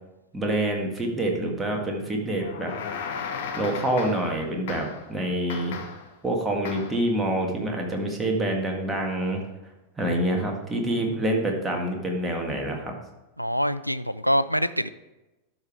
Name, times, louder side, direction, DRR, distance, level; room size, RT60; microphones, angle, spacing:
voice 1, 0.3-2.7 3.5-5.8 6.2-9.4 10.0-12.9, right 1 dB, 10° right, 0 dB, 1.7 m, -26 dB
sound 1, 2.4-4.4 4.7-5.1 5.5-6.1 6.7-7.0, left 6 dB, 55° left, 1.1 m, -35 dB
voice 2, 13.4-14.9, equal, 90° right, 15 dB, 0.3 m, -25 dB
12.0 x 5.0 x 4.7 m, 1.0 s
figure-of-eight pair, 90°, 0 cm